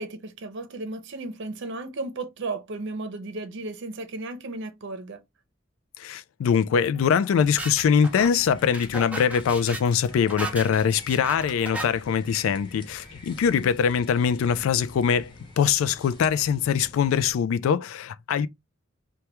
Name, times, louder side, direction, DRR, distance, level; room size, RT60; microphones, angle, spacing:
voice 1, 0.0-5.2, right 2 dB, 65° right, 0.6 m, -34 dB
voice 2, 6.0-18.5, left 7 dB, 85° left, 0.3 m, -23 dB
sound 1, 6.8-11.8, right 2 dB, 5° right, 0.6 m, -36 dB
sound 2, 7.4-17.3, left 1 dB, 25° left, 0.9 m, -48 dB
2.9 x 2.2 x 3.2 m
head